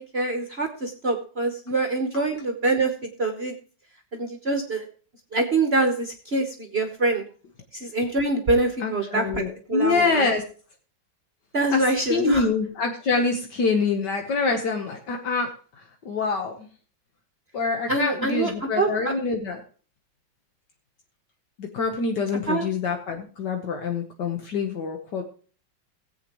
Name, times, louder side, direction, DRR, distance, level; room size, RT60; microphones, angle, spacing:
voice 1, 0.0-3.6 4.1-4.9 5.3-7.2 7.7-9.4 9.7-10.3 11.5-12.5 17.9-19.1 22.5-22.7, right 2 dB, 40° right, 5 dB, 1.1 m, -25 dB
voice 2, 8.8-10.4 11.7-11.8 12.1-16.7 17.5-19.6 21.6-25.2, left 4 dB, 70° left, 3 dB, 1.7 m, -26 dB
17.5 x 8.2 x 3.0 m, 0.40 s
omnidirectional pair, 2.0 m